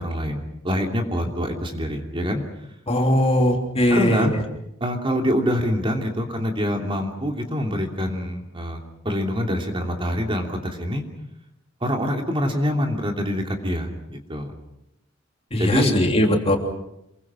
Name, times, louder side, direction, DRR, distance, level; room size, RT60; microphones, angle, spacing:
voice 1, 0.0-2.4 3.9-4.3 4.8-11.0 11.8-14.5 15.6-15.9, equal, 25° right, 3 dB, 2.9 m, -25 dB
voice 2, 2.9-4.3 15.5-16.6, left 1 dB, 30° left, 2 dB, 3.2 m, -19 dB
28.0 x 23.0 x 6.2 m, 0.84 s
head